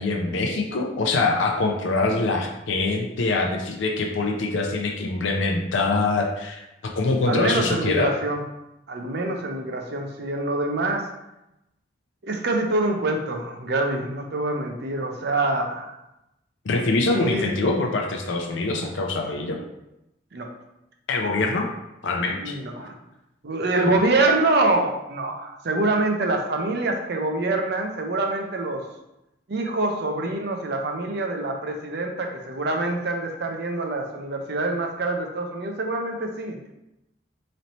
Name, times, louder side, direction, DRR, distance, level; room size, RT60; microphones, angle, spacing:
voice 1, 0.0-6.7 7.0-8.1 16.7-19.6 21.1-21.7 22.0-22.6 23.9-24.0, left 3 dB, 75° left, 1 dB, 0.5 m, -24 dB
voice 2, 7.3-8.4 8.9-11.1 12.2-15.9 17.1-17.5 20.3-20.5 22.4-22.9 23.4-28.8 29.5-36.6, right 2 dB, 60° right, 3 dB, 0.5 m, -25 dB
3.2 x 2.7 x 4.1 m, 0.90 s
head